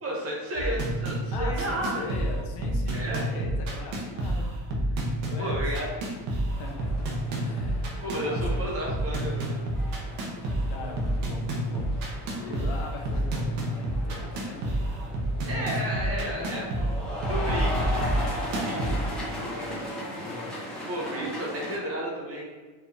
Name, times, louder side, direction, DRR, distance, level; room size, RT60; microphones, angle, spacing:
voice 1, 0.0-2.0 2.9-3.2 5.4-5.9 8.0-9.6 15.5-16.6 17.3-18.0 18.4-19.0 20.9-22.4, right 1 dB, 30° right, -2 dB, 0.8 m, -32 dB
sound 1, 0.6-19.1, right 1 dB, 70° right, 1.1 m, -29 dB
voice 2, 1.3-4.5 4.8-5.7 6.6-8.6 10.2-14.7 15.5-17.0 17.3-17.9 18.5-20.6 21.2-21.3, left 3 dB, 55° left, 1 dB, 0.8 m, -41 dB
sound 2, 6.5-21.8, equal, ahead, 0.7 m, -38 dB
4.6 x 3.2 x 2.7 m, 1.4 s
cardioid pair, 175°, 49 cm